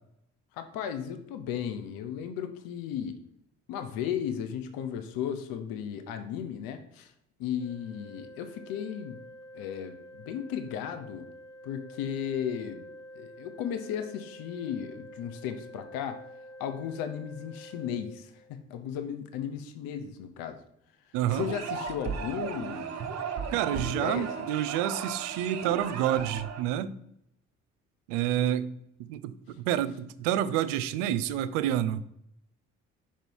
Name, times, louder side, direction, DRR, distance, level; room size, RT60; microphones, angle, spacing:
voice 1, 0.5-3.2 3.7-7.1 7.4-9.2 9.5-11.3 11.6-12.8 13.1-16.2 16.6-20.6 21.3-22.9 23.7-24.5, left 8 dB, 65° left, 0.8 m, -35 dB
Organ, 7.6-18.6, equal, 90° left, 2.1 m, -48 dB
voice 2, 21.1-21.5 23.5-26.9 28.1-28.7 29.1-32.0, right 11 dB, 75° right, 0.5 m, -28 dB
sound 1, 21.3-26.6, right 6 dB, 45° right, 0.9 m, -35 dB
5.3 x 4.4 x 4.6 m
hypercardioid pair, 50°, 38 cm